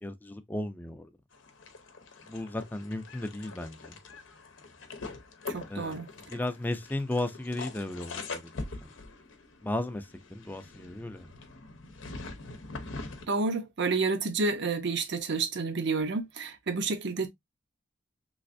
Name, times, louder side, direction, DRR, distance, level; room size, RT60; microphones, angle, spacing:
voice 1, 0.0-1.1 2.3-4.0 5.7-6.0 6.3-8.5 8.8-8.9 9.6-11.3, left 1 dB, 10° left, 0.4 m, -35 dB
sound 1, 1.3-13.3, left 3 dB, 90° left, 0.7 m, -43 dB
voice 2, 5.5-6.1 13.3-17.3, right 4 dB, 65° right, 0.6 m, -29 dB
3.4 x 3.2 x 2.5 m
head